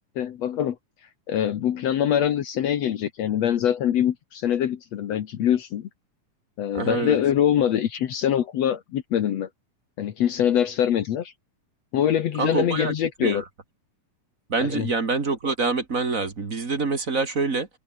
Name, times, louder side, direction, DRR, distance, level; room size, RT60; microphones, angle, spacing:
voice 1, 0.2-0.8 1.3-5.9 6.6-9.5 10.0-11.3 11.9-13.4 14.6-14.9, left 10 dB, 65° left, 2.3 m, -24 dB
voice 2, 6.7-7.2 12.4-12.9 13.2-13.4 14.5-17.7, right 4 dB, 30° right, 2.0 m, -25 dB
omnidirectional pair, 3.5 m